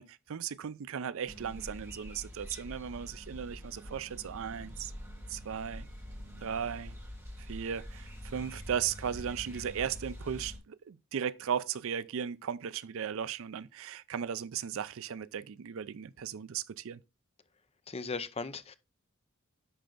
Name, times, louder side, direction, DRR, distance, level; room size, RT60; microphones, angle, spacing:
voice 1, 0.0-4.9 5.3-5.9 6.4-6.9 7.4-17.0, right 8 dB, 65° right, 0.4 m, -36 dB
sound 1, 1.3-10.6, equal, 15° right, 2.9 m, -45 dB
voice 2, 17.9-18.8, left 4 dB, 30° left, 0.6 m, -37 dB
10.0 x 4.4 x 3.8 m
head